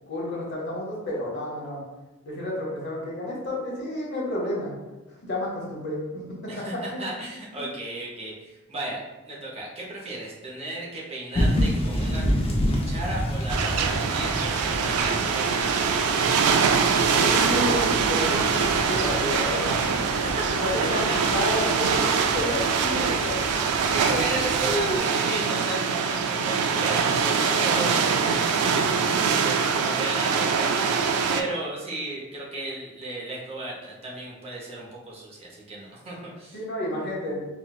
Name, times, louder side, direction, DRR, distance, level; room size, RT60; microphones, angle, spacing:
voice 1, 0.1-1.8 2.2-4.7 5.2-6.2 6.6-7.1 7.6-7.7 17.1-20.0 20.6-23.4 24.6-25.1 36.5-37.6, left 1 dB, 55° left, -3 dB, 0.8 m, -30 dB
voice 2, 6.5-12.4 12.7-15.7 20.2-20.5 21.1-21.2 23.9-30.9 31.3-36.6, right 2 dB, 30° right, -4 dB, 0.6 m, -35 dB
sound 1, 11.3-25.0, equal, 25° left, 0.4 m, -30 dB
sound 2, 13.5-31.4, right 5 dB, 90° right, 0.3 m, -23 dB
4.3 x 2.1 x 2.2 m, 1.1 s
head